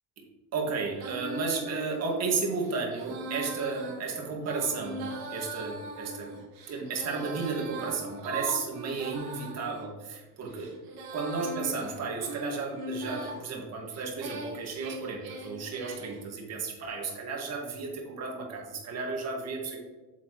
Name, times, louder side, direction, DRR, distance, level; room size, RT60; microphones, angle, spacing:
voice 1, 0.5-6.3 6.7-10.7 11.1-19.8, right 4 dB, 40° right, 0 dB, 2.0 m, -33 dB
Female singing, 0.9-9.8 10.4-13.4 13.9-16.2, right 2 dB, 70° right, 2.1 m, -40 dB
8.5 x 7.1 x 3.1 m, 1.2 s
cardioid pair, 135°, 38 cm